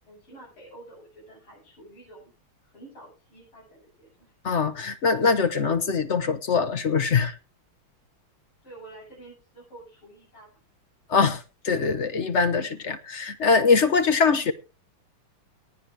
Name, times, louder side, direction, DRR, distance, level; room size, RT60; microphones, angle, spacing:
voice 1, 0.0-2.3 2.6-4.3 8.6-10.5, right 2 dB, 70° left, 9.0 m, -48 dB
voice 2, 4.4-7.3 11.1-14.5, left 5 dB, 45° left, 0.9 m, -23 dB
19.0 x 11.0 x 3.4 m
omnidirectional pair, 2.4 m